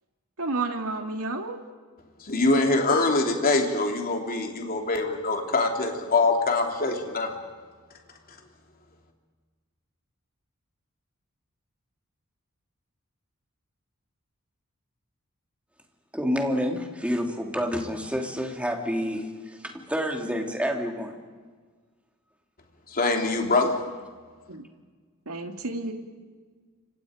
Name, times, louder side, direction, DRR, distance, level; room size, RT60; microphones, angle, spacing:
voice 1, 0.4-1.6 24.5-24.6 25.3-25.9, right 3 dB, 80° right, 4 dB, 2.6 m, -31 dB
voice 2, 2.2-7.3 22.9-23.7, left 3 dB, 45° left, 2 dB, 3.1 m, -24 dB
voice 3, 16.1-21.2, equal, 5° right, 2 dB, 2.9 m, -28 dB
29.5 x 26.0 x 5.2 m, 1.5 s
head